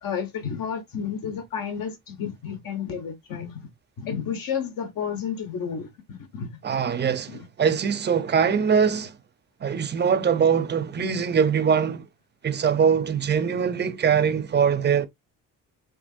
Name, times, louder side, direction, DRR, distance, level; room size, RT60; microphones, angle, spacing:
voice 1, 0.0-3.7 4.0-6.6 7.3-7.5, left 7 dB, 70° left, 1.4 m, -31 dB
voice 2, 6.6-9.2 9.6-12.1 12.4-15.1, right 7 dB, 30° right, 0.6 m, -22 dB
5.3 x 2.9 x 2.5 m
cardioid pair, 135°, 35 cm